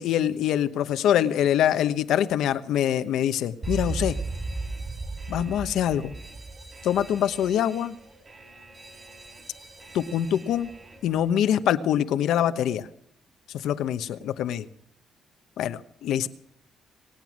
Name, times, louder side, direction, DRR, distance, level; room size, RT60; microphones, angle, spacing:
voice 1, 0.0-4.1 5.3-6.1 6.8-7.9 9.9-10.7 11.0-12.9 13.6-14.7 15.6-16.3, left 10 dB, 80° left, 12 dB, 1.0 m, -24 dB
Alarm, 3.6-11.3, right 3 dB, 30° right, 3.4 m, -37 dB
24.0 x 9.1 x 6.3 m, 0.71 s
cardioid pair, 90°, 0 cm